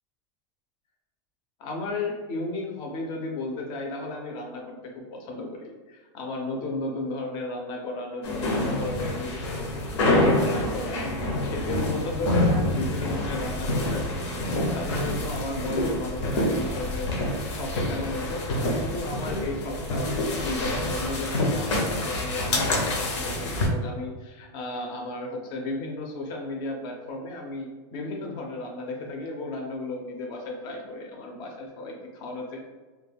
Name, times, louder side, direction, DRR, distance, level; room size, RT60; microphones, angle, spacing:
voice 1, 1.6-11.0 11.4-17.1 17.4-20.1 20.4-32.6, left 2 dB, 30° left, 1 dB, 0.5 m, -34 dB
sound 1, 8.2-23.7, left 1 dB, 70° left, 0.7 m, -27 dB
2.2 x 2.1 x 3.3 m, 1.3 s
supercardioid pair, 170°, 16 cm